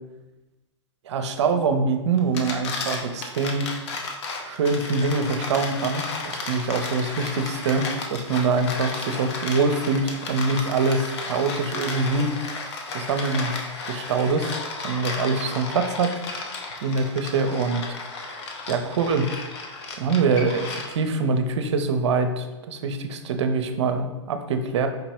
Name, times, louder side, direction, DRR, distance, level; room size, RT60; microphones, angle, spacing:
voice 1, 1.1-3.7 4.4-13.5 13.9-16.2 16.8-17.8 18.2-19.3 20.0-24.9, right 4 dB, 65° right, 7 dB, 0.5 m, -24 dB
sound 1, 2.2-21.2, left 3 dB, 60° left, 0.7 m, -33 dB
4.8 x 3.0 x 2.9 m, 1.1 s
hypercardioid pair, 115°, 16 cm